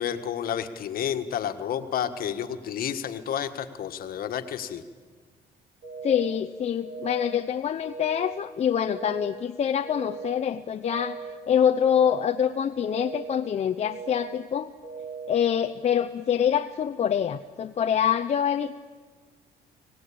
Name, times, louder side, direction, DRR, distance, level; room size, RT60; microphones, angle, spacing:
voice 1, 0.0-4.8, left 9 dB, 60° left, 7 dB, 1.6 m, -30 dB
sound 1, 5.8-6.3 6.8-7.3 7.8-8.3 8.8-9.3 9.8-10.3 10.8-11.3 11.8-12.3 12.8-13.3 13.8-14.3 14.8-15.3, right 5 dB, 75° right, 7.8 m, -38 dB
voice 2, 6.0-11.2 11.5-14.7 15.3-18.8, left 8 dB, 40° left, 7 dB, 0.7 m, -25 dB
25.5 x 18.0 x 8.6 m, 1.5 s
cardioid pair, 110°, 17 cm